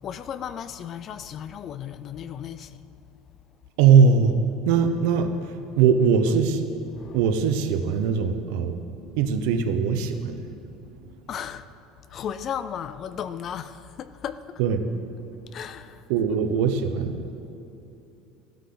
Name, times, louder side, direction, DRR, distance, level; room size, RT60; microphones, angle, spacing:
voice 1, 0.0-2.7 7.0-7.2 11.3-11.6 12.1-14.4 15.5-16.0, left 8 dB, 30° left, 14 dB, 0.4 m, -35 dB
voice 2, 3.8-4.4 4.7-5.3 5.8-6.6 7.1-8.8 9.2-10.3 14.6-14.8 16.1-17.3, right 6 dB, 70° right, 7 dB, 1.0 m, -20 dB
15.0 x 12.0 x 3.9 m, 3.0 s
cardioid pair, 170°, 0 cm